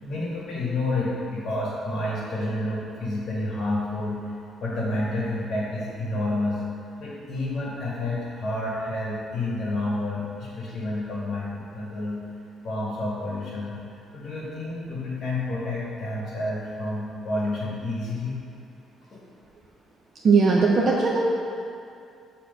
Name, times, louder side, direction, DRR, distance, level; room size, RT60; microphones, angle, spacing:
voice 1, 0.0-4.3 4.6-6.6 7.0-12.2 12.6-13.8 14.1-18.4 19.1-19.2, left 2 dB, 40° left, -5 dB, 1.1 m, -29 dB
voice 2, 20.2-21.2, right 4 dB, 40° right, -3 dB, 0.5 m, -19 dB
6.8 x 2.8 x 5.1 m, 2.4 s
cardioid pair, 155°, 0 cm